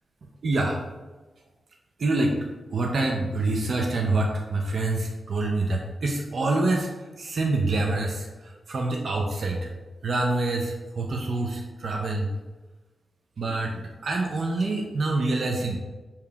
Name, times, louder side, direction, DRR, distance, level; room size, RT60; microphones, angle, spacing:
voice 1, 0.4-0.8 2.0-2.4 2.7-6.9 7.2-8.3 8.7-9.7 10.0-12.3 13.4-15.8, right 2 dB, 50° right, 0 dB, 0.5 m, -26 dB
6.6 x 2.8 x 2.3 m, 1.2 s
wide cardioid pair, 145°, 0 cm